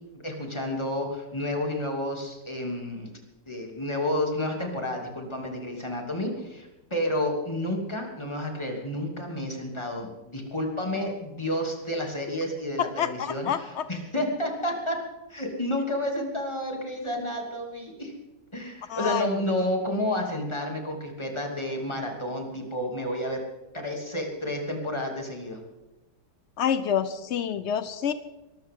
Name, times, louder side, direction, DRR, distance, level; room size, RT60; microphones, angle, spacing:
voice 1, 0.1-3.1 3.5-15.0 15.3-18.1 18.5-23.4 23.7-25.6, left 1 dB, 15° left, 1 dB, 2.8 m, -30 dB
voice 2, 13.0-13.8 18.9-19.3 26.6-28.1, left 8 dB, 75° left, 12 dB, 0.6 m, -27 dB
22.5 x 13.5 x 3.8 m, 1.0 s
omnidirectional pair, 2.0 m